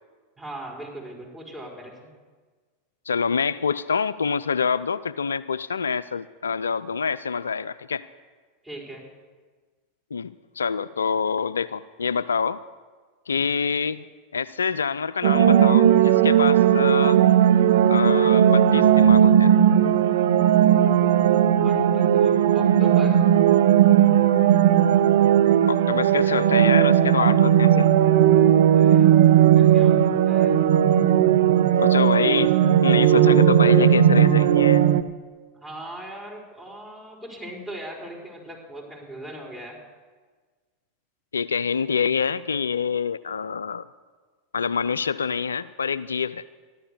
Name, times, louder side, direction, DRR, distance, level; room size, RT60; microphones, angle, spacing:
voice 1, 0.4-2.0 8.6-9.0 21.6-23.2 28.7-30.6 35.5-39.8, right 1 dB, 10° right, -1 dB, 5.0 m, -39 dB
voice 2, 3.1-8.0 10.1-12.6 13.3-14.0 14.3-17.2 17.9-19.5 25.7-27.9 31.8-34.8 41.3-43.9 44.5-46.4, left 6 dB, 80° left, 16 dB, 0.3 m, -26 dB
sound 1, 15.2-35.0, right 10 dB, 65° right, 0.5 m, -17 dB
13.5 x 11.5 x 6.9 m, 1.4 s
figure-of-eight pair, 85°, 0 cm